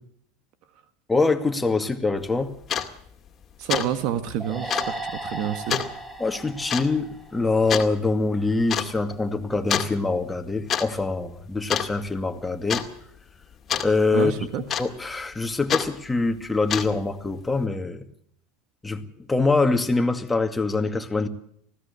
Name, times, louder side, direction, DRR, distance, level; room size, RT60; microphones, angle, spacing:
voice 1, 1.1-2.5 6.2-12.8 13.8-14.3 14.8-18.0 18.8-21.3, left 3 dB, 10° left, 2.2 m, -24 dB
sound 1, 2.2-2.3 2.6-2.9 3.3-3.4 3.7-3.9 4.2-4.3 4.7-4.9 5.7-5.9 6.7-6.9 7.7-7.9 8.7-8.9 9.7-9.9 10.5-10.9 11.1-11.4 11.7-12.2 12.7-12.9 13.7-13.9 14.7-15.1 15.7-15.9 16.5-17.1, left 8 dB, 35° left, 2.2 m, -26 dB
voice 2, 3.6-5.8 14.1-14.6, right 10 dB, 60° right, 1.8 m, -28 dB
sound 2, 4.4-7.9, right 2 dB, 10° right, 4.9 m, -36 dB
20.0 x 16.0 x 8.5 m
hypercardioid pair, 100°, 0 cm